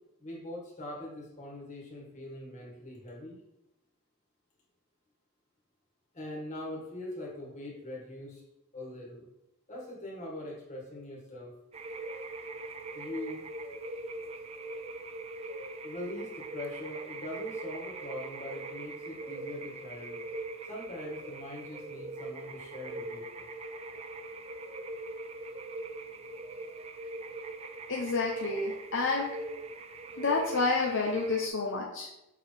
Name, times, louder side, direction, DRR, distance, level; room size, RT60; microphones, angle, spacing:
voice 1, 0.2-3.4 6.1-8.4 8.7-9.3 9.7-11.5 12.9-13.4 15.8-20.2 20.6-23.5, left 1 dB, 30° left, -4 dB, 1.9 m, -42 dB
sound 1, 11.7-31.5, right 2 dB, 30° right, 0.4 m, -41 dB
voice 2, 27.9-29.4 30.2-32.1, left 3 dB, 60° left, -1 dB, 0.7 m, -29 dB
6.5 x 4.6 x 3.4 m, 0.88 s
head